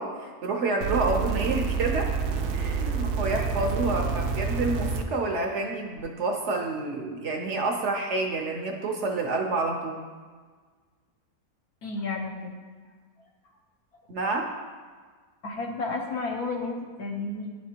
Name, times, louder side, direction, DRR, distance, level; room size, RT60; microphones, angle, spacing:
voice 1, 0.0-2.1 2.5-10.0 14.1-14.5, right 3 dB, 60° right, 2 dB, 0.8 m, -28 dB
sound 1, 0.8-5.0 6.0-6.1, right 5 dB, 85° right, 1.1 m, -28 dB
voice 2, 11.8-12.5 15.4-17.5, left 3 dB, 75° left, 1 dB, 1.4 m, -32 dB
11.0 x 4.2 x 2.8 m, 1.5 s
omnidirectional pair, 1.6 m